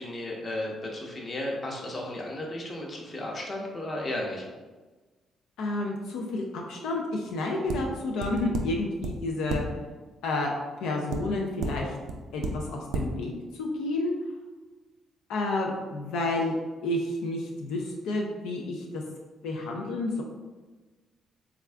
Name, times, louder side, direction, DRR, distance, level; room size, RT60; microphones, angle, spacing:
voice 1, 0.0-4.5, left 1 dB, 35° left, -1 dB, 0.8 m, -34 dB
voice 2, 5.6-9.6 10.2-10.5 10.8-11.9 12.3-14.1 15.3-16.5 16.8-19.0 19.4-20.2, left 2 dB, 90° left, 0 dB, 0.4 m, -30 dB
sound 1, 7.7-7.8 8.2-8.6 9.0-9.1 9.5-9.6 11.1-11.2 11.6-11.7 12.1-12.2 12.4-12.5 12.9-13.0, right 4 dB, 80° right, 0.4 m, -30 dB
3.5 x 2.3 x 3.3 m, 1.3 s
cardioid pair, 90°, 0 cm